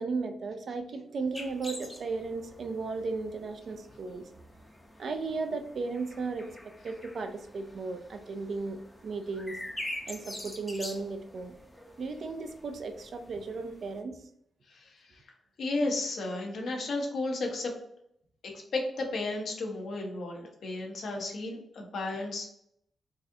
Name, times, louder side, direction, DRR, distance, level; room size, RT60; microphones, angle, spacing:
voice 1, 0.0-4.3 5.0-9.6 10.1-11.5 12.0-14.2, right 4 dB, 60° right, 6 dB, 0.5 m, -35 dB
sound 1, 1.3-14.0, left 1 dB, 15° left, 0.6 m, -46 dB
voice 2, 14.7-15.2 15.6-17.7 18.4-22.5, left 2 dB, 70° left, 1 dB, 0.9 m, -33 dB
4.0 x 2.4 x 2.7 m, 0.72 s
cardioid pair, 105°, 0 cm